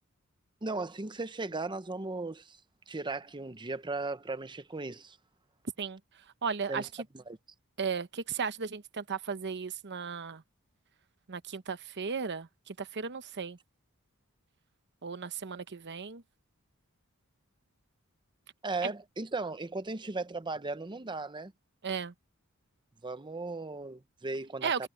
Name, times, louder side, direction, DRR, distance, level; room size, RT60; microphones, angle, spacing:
voice 1, 0.6-2.6 2.9-5.2 6.7-6.9 7.1-7.4 18.6-21.5 23.0-24.9, right 3 dB, 20° right, 0.8 m, -37 dB
voice 2, 6.4-6.9 7.8-10.4 11.3-13.6 15.0-16.2 18.8-18.9 21.8-22.1 24.6-24.9, right 6 dB, 50° right, 0.9 m, -35 dB
head